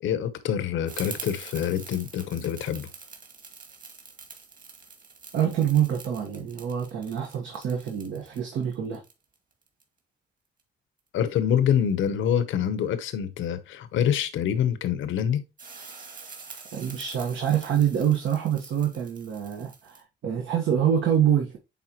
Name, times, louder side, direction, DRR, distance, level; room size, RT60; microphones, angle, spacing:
voice 1, 0.0-2.9 11.1-15.4, left 9 dB, 80° left, 1.0 m, -26 dB
sound 1, 0.9-9.8 15.6-20.0, right 4 dB, 40° right, 2.3 m, -45 dB
voice 2, 5.3-9.0 16.7-21.6, right 9 dB, 70° right, 1.4 m, -26 dB
9.3 x 3.7 x 3.0 m
cardioid pair, 90°, 20 cm